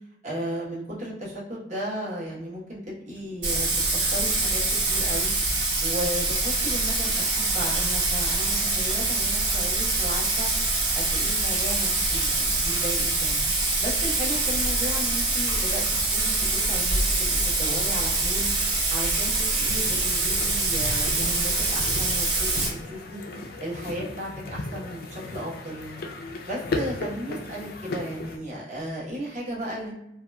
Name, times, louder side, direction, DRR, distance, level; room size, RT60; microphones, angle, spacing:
voice 1, 0.2-4.6 4.9-5.3 5.8-10.5 10.9-13.4 13.8-15.9 16.1-18.5 18.9-23.2 23.6-26.0 26.4-29.9, equal, 40° right, -6 dB, 0.9 m, -35 dB
Bathtub (filling or washing), 3.4-22.7, right 2 dB, 90° right, 1.4 m, -25 dB
sound 1, 19.6-28.4, left 2 dB, 55° left, 0.4 m, -36 dB
2.7 x 2.2 x 2.2 m, 0.83 s
head